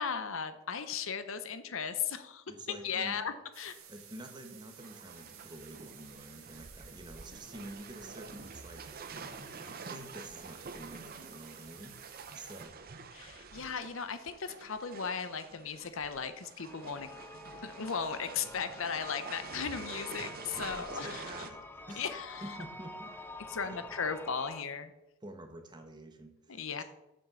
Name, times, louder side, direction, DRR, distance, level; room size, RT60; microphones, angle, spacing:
voice 1, 0.0-3.8 13.1-17.1 17.6-21.5 21.9-22.6 23.5-24.9 26.5-26.8, left 6 dB, 65° left, 11 dB, 0.7 m, -37 dB
voice 2, 2.5-3.2 3.9-8.9 9.4-12.8 20.6-22.0 22.4-23.1 23.6-23.8 25.2-26.8, right 1 dB, 20° right, 5 dB, 1.1 m, -48 dB
sound 1, 3.5-12.6, right 8 dB, 70° right, 1.6 m, -54 dB
sound 2, 4.8-21.5, right 4 dB, 40° right, 0.7 m, -48 dB
sound 3, 16.6-24.6, left 2 dB, 10° left, 0.5 m, -47 dB
7.4 x 6.3 x 7.0 m, 0.96 s
head